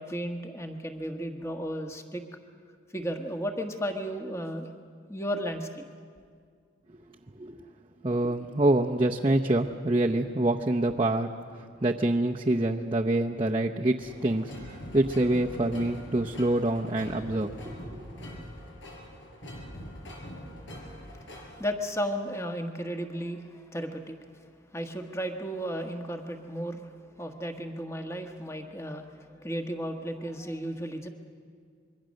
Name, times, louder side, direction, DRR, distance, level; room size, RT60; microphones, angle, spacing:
voice 1, 0.0-2.2 2.9-4.7 5.1-5.8 21.3-24.2 24.7-26.9 27.2-31.1, equal, 15° left, 4 dB, 1.3 m, -34 dB
voice 2, 8.0-11.3 11.8-18.3, right 1 dB, 25° right, 0 dB, 0.7 m, -26 dB
sound 1, 14.0-21.7, equal, 80° left, 4.6 m, -43 dB
26.0 x 22.5 x 6.4 m, 2.1 s
head